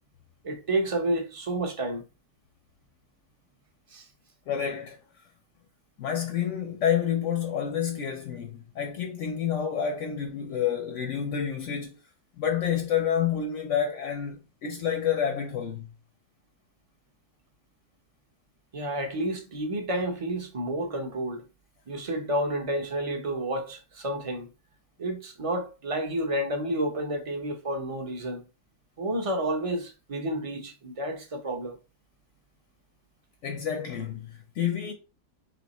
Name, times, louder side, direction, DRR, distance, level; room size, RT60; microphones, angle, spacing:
voice 1, 0.4-2.0 3.9-4.1 18.7-21.4 21.9-24.5 25.0-28.4 29.0-31.8, right 1 dB, 35° right, 0.6 m, -30 dB
voice 2, 4.5-5.0 6.0-12.0 12.4-15.9 33.4-34.9, left 8 dB, 60° left, 0.8 m, -29 dB
3.5 x 2.8 x 4.0 m
omnidirectional pair, 1.8 m